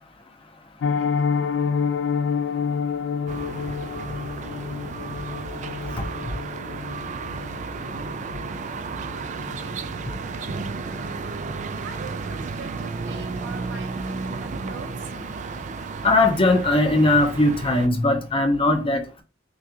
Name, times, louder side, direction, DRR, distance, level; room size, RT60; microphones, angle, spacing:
Piano, 0.8-11.7 12.0-12.2 12.5-12.6 13.0-13.2 13.6-13.7, left 6 dB, 85° left, 0.3 m, -29 dB
sound 1, 3.3-17.9, right 4 dB, 40° right, 0.3 m, -33 dB
voice 1, 9.2-11.4 11.8-15.2, right 4 dB, 75° right, 1.0 m, -44 dB
voice 2, 16.0-19.2, left 2 dB, 30° left, 0.7 m, -20 dB
6.1 x 2.4 x 2.8 m
head